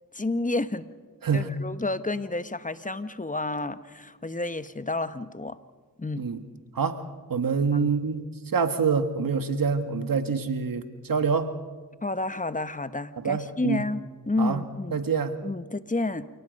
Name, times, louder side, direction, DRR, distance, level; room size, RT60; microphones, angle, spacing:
voice 1, 0.1-0.8 1.3-5.6 6.0-6.3 7.7-7.8 12.0-15.0 15.4-16.2, left 2 dB, 20° left, 13 dB, 1.1 m, -30 dB
voice 2, 7.3-8.2 8.5-11.5 13.2-13.8 14.4-14.6 14.9-15.4, right 5 dB, 70° right, 9 dB, 1.6 m, -26 dB
28.0 x 18.5 x 5.4 m, 1.4 s
cardioid pair, 45°, 35 cm